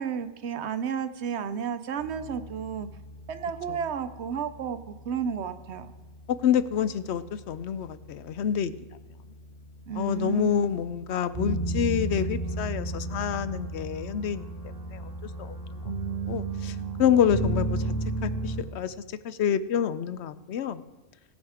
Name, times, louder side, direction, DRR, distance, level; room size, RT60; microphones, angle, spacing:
voice 1, 0.0-2.9 3.3-5.9 9.9-10.7, right 7 dB, 70° right, 11 dB, 0.9 m, -32 dB
sound 1, 2.0-18.6, right 2 dB, 15° right, 4.1 m, -35 dB
voice 2, 6.3-8.8 9.9-14.4 14.9-15.8 16.3-17.8 18.2-20.8, left 8 dB, 70° left, 14 dB, 0.8 m, -27 dB
18.0 x 6.3 x 4.9 m, 1.2 s
omnidirectional pair, 1.2 m